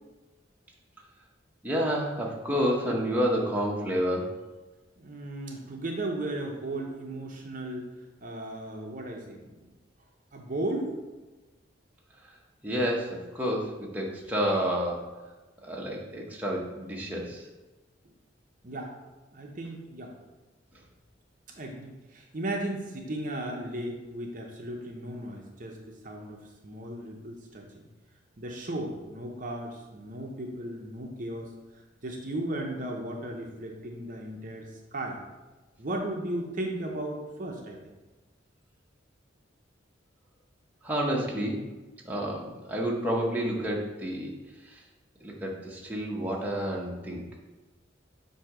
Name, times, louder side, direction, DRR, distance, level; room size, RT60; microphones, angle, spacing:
voice 1, 1.6-4.4 12.6-15.1 15.6-17.5 40.8-41.6 42.0-44.3 44.6-44.8 45.2-47.2, equal, 10° right, -3 dB, 0.8 m, -29 dB
voice 2, 5.0-7.9 8.2-9.7 10.3-10.9 18.0-18.1 18.6-19.0 19.3-20.2 21.6-27.9 28.4-35.2 35.8-37.8, right 1 dB, 40° right, 1 dB, 0.6 m, -36 dB
7.5 x 2.7 x 4.9 m, 1.2 s
head